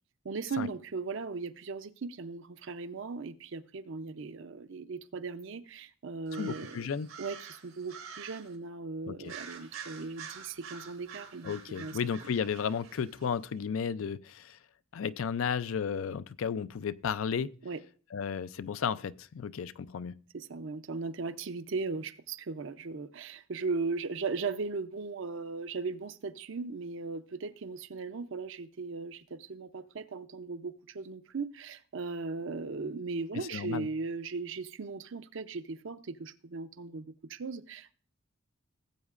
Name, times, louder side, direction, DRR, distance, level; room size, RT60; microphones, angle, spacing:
voice 1, 0.2-6.9 7.2-12.0 17.6-17.8 20.3-37.9, right 4 dB, 65° right, 0.6 m, -38 dB
sound 1, 6.3-8.6 9.2-13.3, right 7 dB, 85° right, 1.9 m, -47 dB
voice 2, 6.4-7.1 9.1-9.3 11.4-14.6 14.9-17.6 18.1-20.2 33.4-33.9, left 6 dB, 75° left, 0.4 m, -33 dB
17.5 x 8.1 x 2.5 m
head